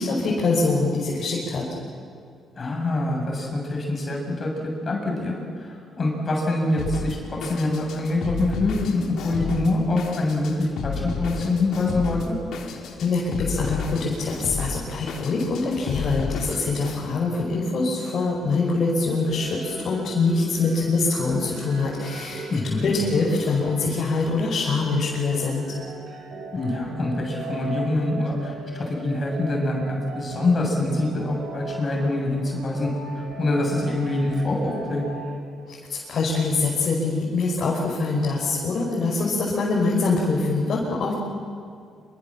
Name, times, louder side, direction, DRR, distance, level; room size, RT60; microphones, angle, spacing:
voice 1, 0.0-1.6 13.0-25.7 35.7-41.1, left 3 dB, 55° left, -4 dB, 6.0 m, -24 dB
voice 2, 2.6-12.4 22.5-22.9 26.5-32.9 33.2-35.1, left 2 dB, 40° left, 0 dB, 7.2 m, -25 dB
Drum kit, 6.8-17.0, left 5 dB, 75° left, 3.4 m, -32 dB
sound 1, 19.3-35.3, right 3 dB, 80° right, 7.2 m, -39 dB
27.0 x 25.0 x 7.6 m, 2.3 s
cardioid pair, 90°, 0 cm